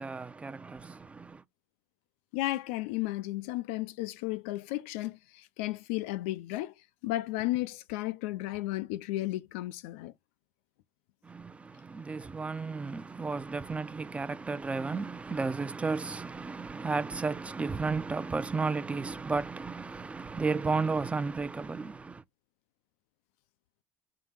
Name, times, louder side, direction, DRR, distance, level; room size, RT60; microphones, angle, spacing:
voice 1, 0.0-1.4 11.2-22.2, right 4 dB, 20° right, 0.7 m, -33 dB
voice 2, 2.3-6.7 7.0-10.1, left 17 dB, 85° left, 0.5 m, -33 dB
5.8 x 3.9 x 5.4 m
supercardioid pair, 90°, 7 cm